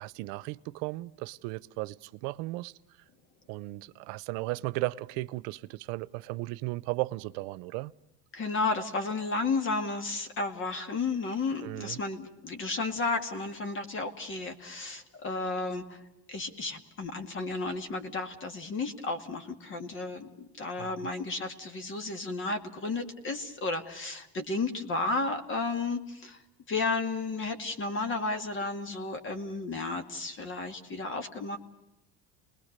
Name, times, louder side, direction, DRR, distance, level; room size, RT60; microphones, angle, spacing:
voice 1, 0.0-2.7 3.5-7.9 11.6-12.0 20.8-20.9, right 20 dB, 90° right, 0.8 m, -35 dB
voice 2, 8.3-16.0 16.3-26.4 26.7-31.6, left 3 dB, 40° left, 2.2 m, -33 dB
29.5 x 20.5 x 6.7 m
cardioid pair, 140°, 32 cm